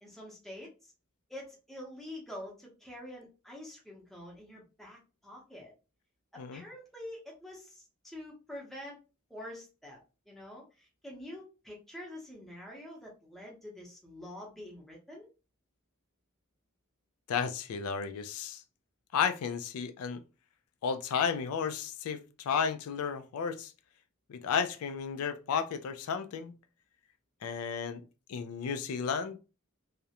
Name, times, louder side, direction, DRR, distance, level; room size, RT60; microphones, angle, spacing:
voice 1, 0.0-0.9 1.3-5.7 6.3-9.0 9.3-10.0 10.3-15.3, left 1 dB, ahead, 0.7 m, -46 dB
voice 2, 17.3-18.6 19.1-20.2 20.8-23.7 24.3-26.5 27.4-28.0 28.3-29.4, left 6 dB, 85° left, 0.3 m, -33 dB
2.4 x 2.0 x 2.8 m
head